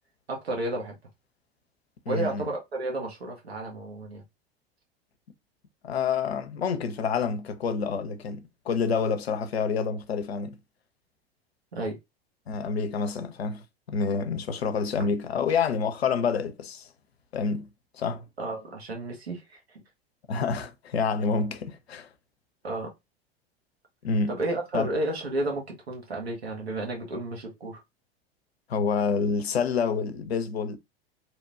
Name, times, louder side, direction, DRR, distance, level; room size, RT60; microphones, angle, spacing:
voice 1, 0.3-0.9 2.1-4.2 11.7-12.0 18.4-19.8 22.6-22.9 24.3-27.8, right 2 dB, 85° right, 1.2 m, -32 dB
voice 2, 2.1-2.5 5.8-10.6 12.5-16.9 17.3-17.7 17.9-18.3 20.3-22.1 24.0-24.4 24.7-24.9 28.7-30.8, left 5 dB, 85° left, 0.5 m, -28 dB
2.9 x 2.1 x 2.4 m
figure-of-eight pair, 85°, 30 cm